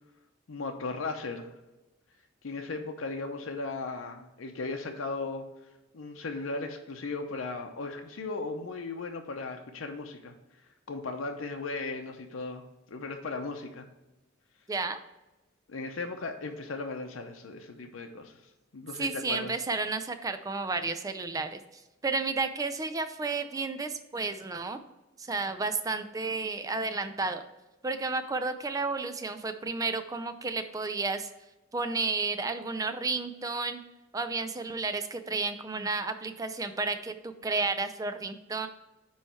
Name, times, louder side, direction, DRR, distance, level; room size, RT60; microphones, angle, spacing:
voice 1, 0.5-1.5 2.4-5.5 5.9-10.3 10.9-13.9 15.7-18.4 18.7-19.5, left 3 dB, 90° left, 3 dB, 0.6 m, -37 dB
voice 2, 14.7-15.0 19.0-24.8 25.2-27.4 27.8-31.3 31.7-33.8 34.1-38.7, right 3 dB, 15° right, 9 dB, 0.4 m, -32 dB
9.0 x 3.1 x 4.4 m, 1.0 s
head